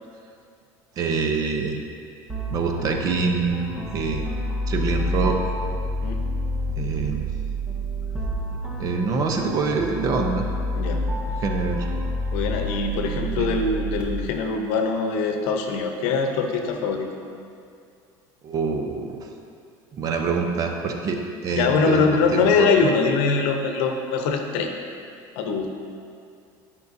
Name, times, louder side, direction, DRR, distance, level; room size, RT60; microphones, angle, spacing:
voice 1, 1.0-1.8 2.5-3.6 3.9-4.2 4.7-5.4 6.8-7.3 8.8-10.4 11.4-11.9 13.4-13.5 18.4-19.2 20.0-22.7, right 4 dB, 40° right, 3 dB, 0.7 m, -25 dB
sound 1, 2.3-14.0, equal, 10° right, 0.9 m, -28 dB
voice 2, 12.3-17.1 21.6-24.7 25.4-25.7, left 4 dB, 80° left, 4 dB, 0.8 m, -23 dB
10.5 x 5.4 x 2.7 m, 2.4 s
cardioid pair, 140°, 9 cm